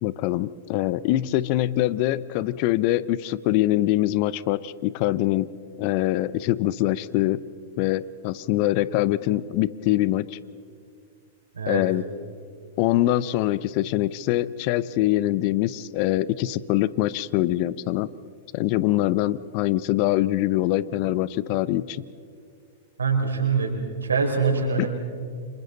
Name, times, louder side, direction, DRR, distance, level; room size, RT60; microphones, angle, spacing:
voice 1, 0.0-5.5 5.8-7.4 7.8-10.4 11.7-12.0 12.8-18.1 18.5-22.0 24.8-24.9, left 15 dB, 50° left, 18 dB, 0.7 m, -24 dB
voice 2, 23.0-23.7 24.0-24.9, right 5 dB, 85° right, 1 dB, 4.5 m, -23 dB
30.0 x 26.5 x 4.1 m, 2.2 s
hypercardioid pair, 105°, 0 cm